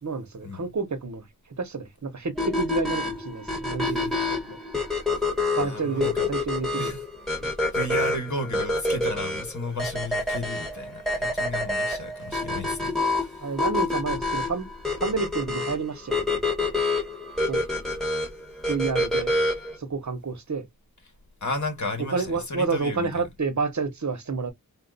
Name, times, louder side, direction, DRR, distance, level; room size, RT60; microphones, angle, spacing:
voice 1, 0.0-1.3 1.6-4.6 5.6-6.9 7.4-7.5 7.8-8.1 13.4-14.7 15.0-16.4 17.5-17.6 18.7-19.3 19.8-20.7 22.1-24.5, right 4 dB, 55° right, 0.9 m, -29 dB
sound 1, 2.4-19.8, left 2 dB, ahead, 1.6 m, -27 dB
voice 2, 5.6-6.3 6.7-7.0 7.7-13.4 21.4-23.2, left 2 dB, 55° left, 1.8 m, -33 dB
4.2 x 2.6 x 3.9 m
wide cardioid pair, 80°, 34 cm